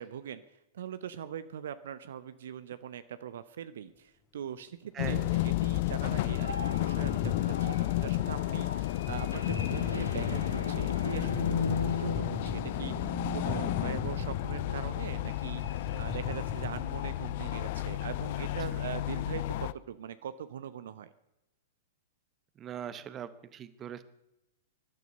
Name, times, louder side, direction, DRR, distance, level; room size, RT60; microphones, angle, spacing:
voice 1, 0.0-15.6 16.0-21.1, right 9 dB, 60° right, 13 dB, 0.8 m, -42 dB
voice 2, 4.9-5.3 18.4-18.8 22.6-24.0, right 9 dB, 25° right, 14 dB, 1.1 m, -41 dB
sound 1, 5.0-19.7, left 16 dB, 45° left, 0.5 m, -32 dB
sound 2, 6.2-16.9 17.3-17.4 17.8-18.5, left 2 dB, 85° left, 2.2 m, -39 dB
sound 3, 6.8-8.2 9.0-9.1 9.5-10.7 11.3-13.0 13.5-14.9 15.3-15.4 15.6-16.8, left 3 dB, 20° left, 2.1 m, -40 dB
19.0 x 12.0 x 5.4 m, 0.91 s
figure-of-eight pair, 105°, 0 cm